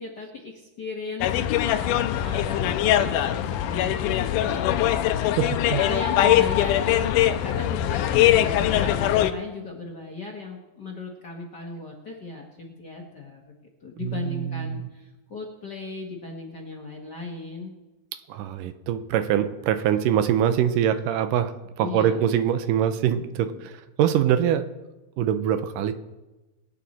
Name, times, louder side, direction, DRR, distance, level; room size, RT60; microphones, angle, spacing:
voice 1, 0.0-5.2 5.6-7.0 7.4-13.5 13.8-17.7 21.8-22.2 23.1-23.6, left 3 dB, 50° left, 0 dB, 1.3 m, -37 dB
sound 1, 1.2-9.3, left 12 dB, 80° left, 2.2 m, -22 dB
voice 2, 5.3-5.9 14.0-14.9 18.1-24.7 25.2-25.9, right 9 dB, 85° right, 10 dB, 2.4 m, -24 dB
23.0 x 8.6 x 4.2 m, 1.1 s
omnidirectional pair, 3.8 m